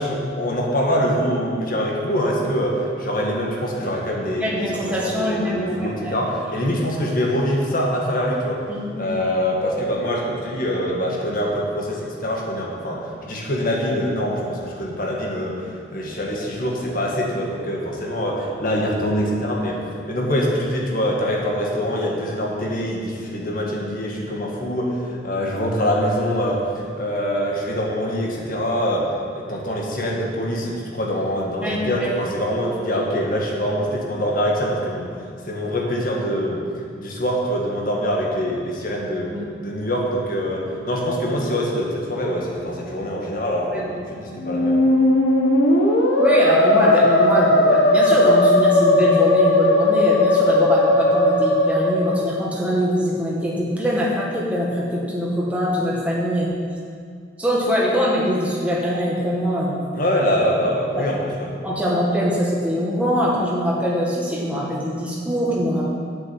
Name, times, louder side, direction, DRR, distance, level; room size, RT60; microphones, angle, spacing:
voice 1, 0.0-8.6 9.0-15.7 15.9-19.8 20.1-25.0 25.2-29.1 29.3-35.1 35.4-36.6 37.0-39.3 39.6-44.8 59.9-61.5, equal, 50° left, -2 dB, 1.7 m, -24 dB
voice 2, 4.4-6.2 8.7-9.3 31.6-32.1 39.3-39.5 43.7-43.9 44.2-44.4 46.2-56.5 57.4-59.8 61.0-61.1 61.6-65.8, equal, 10° right, -5 dB, 1.8 m, -23 dB
Musical instrument, 44.4-52.4, left 1 dB, 85° left, 1.2 m, -17 dB
8.0 x 7.2 x 7.4 m, 2.2 s
head